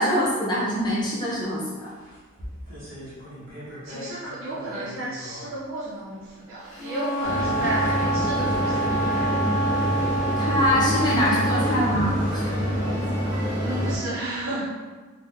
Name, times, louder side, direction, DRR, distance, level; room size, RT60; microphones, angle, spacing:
voice 1, 0.0-1.9 10.4-12.5, equal, 20° left, -7 dB, 0.7 m, -24 dB
sound 1, 0.8-1.0 1.3-1.4 1.8-4.2 4.5-5.5 6.2-6.3 7.0-13.0, equal, 45° right, 1.0 m, -41 dB
voice 2, 3.8-9.0 13.6-14.7, right 1 dB, 65° right, -10 dB, 0.7 m, -33 dB
Wind instrument woodwind instrument, 6.7-11.8, right 2 dB, 70° left, 0.8 m, -27 dB
sound 2, 7.2-14.0, equal, 25° right, 1.4 m, -26 dB
3.7 x 2.2 x 3.2 m, 1.3 s
head